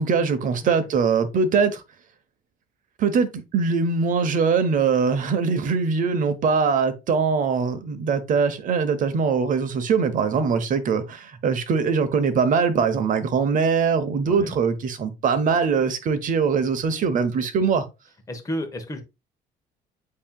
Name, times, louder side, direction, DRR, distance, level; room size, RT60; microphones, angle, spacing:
voice 1, 0.0-1.8 3.0-17.8, right 5 dB, 50° right, 0.8 m, -22 dB
voice 2, 14.2-14.5 18.3-19.0, equal, 20° left, 0.9 m, -32 dB
8.3 x 2.8 x 2.2 m
cardioid pair, 110°, 17 cm